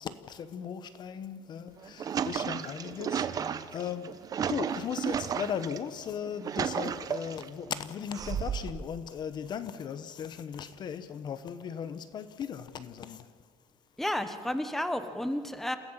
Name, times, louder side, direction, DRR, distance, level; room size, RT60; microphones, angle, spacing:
voice 1, 0.0-4.2 4.5-13.3, left 8 dB, 40° left, 0.9 m, -37 dB
sound 1, 1.7-5.8 6.2-7.5 8.1-8.8, right 7 dB, 35° right, 0.9 m, -33 dB
voice 2, 14.0-15.8, left 1 dB, ahead, 1.0 m, -31 dB
28.5 x 16.0 x 7.4 m
cardioid pair, 170°, 12 cm